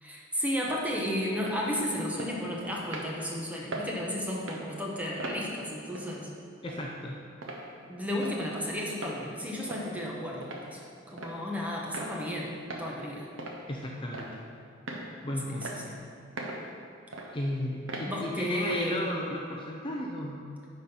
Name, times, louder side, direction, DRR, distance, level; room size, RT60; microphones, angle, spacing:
voice 1, 0.0-6.3 7.9-10.8 11.1-12.5 12.8-13.3 18.0-19.0, equal, 10° right, -3 dB, 1.1 m, -33 dB
sound 1, 0.7-0.8 1.3-1.6 2.2-2.3 2.9-3.1 3.7-3.9 4.4-4.6 5.2-5.4 6.0-6.1 6.7-6.8 7.4-7.6 8.2-8.4 8.9-9.2 9.7-9.9 10.4-10.6 11.2-11.4 11.9-12.1 12.7-12.9 13.4-13.6 14.1-14.4 14.9-15.1 15.6-15.8 16.4-16.6 17.1-17.3 17.9-18.1 18.7-18.9, right 2 dB, 75° right, 1.1 m, -38 dB
voice 2, 6.6-7.2 13.7-14.3 15.2-15.7 17.3-20.4, left 1 dB, 25° left, -1 dB, 0.6 m, -34 dB
9.5 x 4.3 x 5.5 m, 2.4 s
head